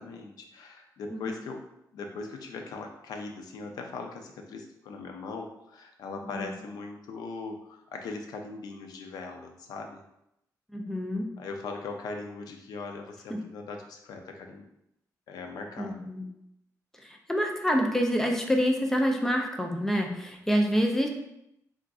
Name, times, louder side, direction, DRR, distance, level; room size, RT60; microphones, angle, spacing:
voice 1, 0.0-1.6 1.9-10.0 11.4-14.7 15.3-16.1, left 3 dB, 85° left, 4 dB, 0.4 m, -40 dB
voice 2, 10.7-11.3 13.3-13.4 15.8-16.2 17.0-21.1, equal, 5° left, 2 dB, 0.3 m, -27 dB
3.6 x 2.4 x 2.3 m, 0.81 s
wide cardioid pair, 175°, 7 cm